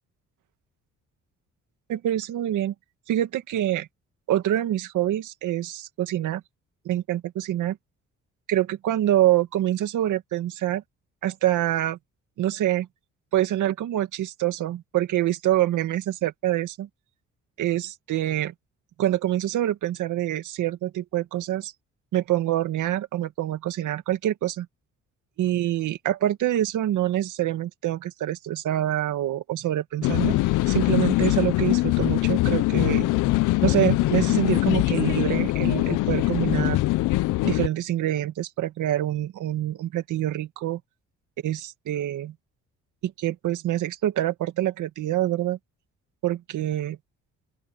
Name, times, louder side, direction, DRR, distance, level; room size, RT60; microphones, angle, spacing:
voice 1, 1.9-2.7 3.1-3.9 4.3-6.4 6.9-7.8 8.5-10.8 11.2-12.0 12.4-12.9 13.3-16.9 17.6-18.5 19.0-21.7 22.1-24.7 25.4-30.4 30.7-33.1 33.6-36.8 37.4-40.8 41.4-42.3 43.0-45.6 46.2-47.0, right 13 dB, 80° right, 2.1 m, -26 dB
sound 1, 30.0-37.7, left 19 dB, 85° left, 0.6 m, -22 dB
open air
cardioid pair, 90°, 30 cm